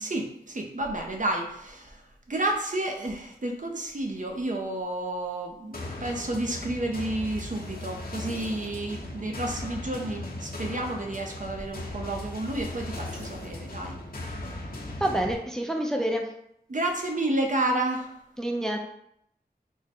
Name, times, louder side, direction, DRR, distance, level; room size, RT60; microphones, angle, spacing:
voice 1, 0.0-2.0 2.3-14.0 16.7-18.1, right 1 dB, 50° right, 2 dB, 0.6 m, -31 dB
sound 1, 5.7-15.3, left 1 dB, 60° left, 0.8 m, -38 dB
voice 2, 15.0-16.3 18.4-18.8, right 1 dB, 5° left, 2 dB, 0.5 m, -27 dB
3.6 x 2.1 x 4.3 m, 0.73 s
wide cardioid pair, 50°, 17 cm